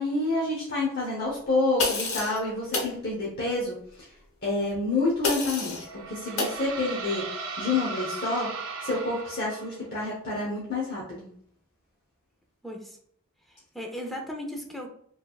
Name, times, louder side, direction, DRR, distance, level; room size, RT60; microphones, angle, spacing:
voice 1, 0.0-4.1 4.4-5.8 6.1-7.2 7.6-8.5 8.8-11.3, left 2 dB, 45° left, -5 dB, 0.9 m, -28 dB
sound 1, 1.8-2.4 2.7-2.9 5.2-5.9 6.4-6.6, left 3 dB, 70° left, 1.1 m, -28 dB
sound 2, 5.6-9.9, right 4 dB, 65° right, 0.7 m, -37 dB
voice 2, 12.6-13.0 13.5-14.9, equal, ahead, 1 dB, 0.7 m, -37 dB
5.0 x 3.3 x 2.4 m, 0.67 s
head